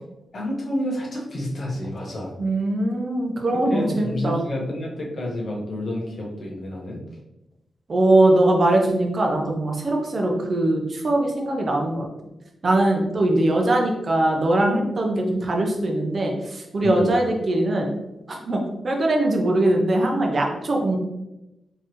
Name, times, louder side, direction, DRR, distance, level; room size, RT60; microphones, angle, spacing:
voice 1, 0.3-2.3 3.7-7.0 16.8-17.1, left 1 dB, 55° left, -2 dB, 1.2 m, -29 dB
voice 2, 2.4-4.4 7.9-12.1 12.6-17.9 18.3-21.0, right 1 dB, 45° right, 1 dB, 0.8 m, -21 dB
4.5 x 3.0 x 3.1 m, 0.96 s
cardioid pair, 85°, 0 cm